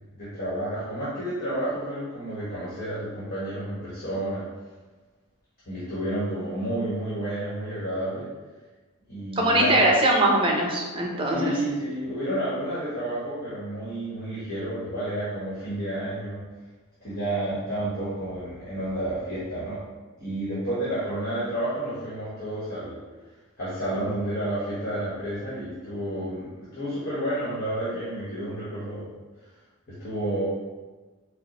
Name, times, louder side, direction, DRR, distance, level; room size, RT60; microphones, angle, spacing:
voice 1, 0.2-4.4 5.7-8.3 9.1-9.8 11.2-16.4 17.0-19.8 20.2-23.0 23.6-29.1 29.9-30.4, right 1 dB, 45° left, -11 dB, 1.2 m, -30 dB
voice 2, 9.4-11.5, right 1 dB, 25° right, -1 dB, 0.6 m, -21 dB
5.1 x 2.0 x 3.0 m, 1.3 s
head